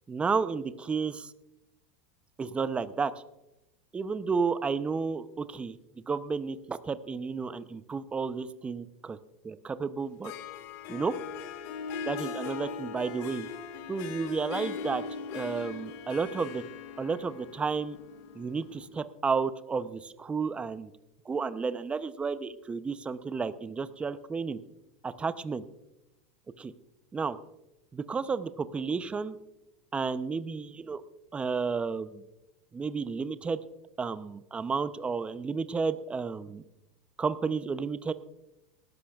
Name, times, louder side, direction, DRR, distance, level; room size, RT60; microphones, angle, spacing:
voice 1, 0.1-1.3 2.4-3.1 3.9-5.8 6.1-9.2 9.4-10.3 10.9-11.1 12.1-13.5 13.9-15.0 15.3-16.6 17.0-18.0 18.3-20.9 21.3-24.6 25.0-25.6 26.6-26.7 27.1-27.4 27.9-29.4 29.9-31.0 31.3-32.2 32.7-33.6 34.0-36.6 37.2-38.1, right 5 dB, 15° right, 13 dB, 0.7 m, -32 dB
Harp, 10.0-19.0, left 5 dB, 55° left, 1.8 m, -40 dB
19.5 x 13.0 x 2.4 m, 0.94 s
hypercardioid pair, 110°, 7 cm